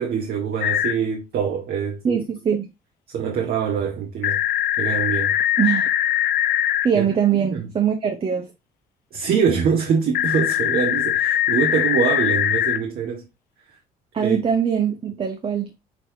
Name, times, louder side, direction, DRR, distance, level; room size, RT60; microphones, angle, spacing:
voice 1, 0.0-2.0 3.1-4.4 4.8-5.4 6.9-7.0 7.5-7.7 9.1-13.3 14.2-14.4, right 7 dB, 60° right, 1.1 m, -24 dB
sound 1, 0.6-0.9 4.2-6.9 10.1-12.8, left 12 dB, 70° left, 0.6 m, -21 dB
voice 2, 2.0-2.7 5.6-5.9 6.8-8.5 14.1-15.7, right 7 dB, 35° right, 0.8 m, -22 dB
6.1 x 3.1 x 2.7 m
cardioid pair, 110°, 17 cm